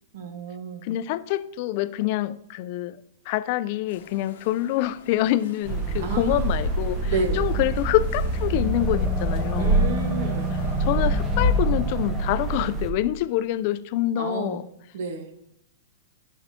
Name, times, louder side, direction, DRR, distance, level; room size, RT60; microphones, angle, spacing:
voice 1, 0.1-0.9 6.0-6.4 7.0-7.4 9.6-10.6 14.2-14.6 14.9-15.3, right 4 dB, 65° right, 6 dB, 1.5 m, -30 dB
voice 2, 0.8-3.0 3.3-9.8 10.8-14.7, left 14 dB, 50° left, 14 dB, 0.4 m, -26 dB
sound 1, 3.9-11.6, left 4 dB, 70° left, 0.9 m, -32 dB
sound 2, 5.6-12.9, right 3 dB, 30° right, 0.9 m, -27 dB
sound 3, 7.3-12.7, equal, ahead, 1.9 m, -30 dB
10.5 x 5.8 x 2.9 m, 0.79 s
hypercardioid pair, 115°, 0 cm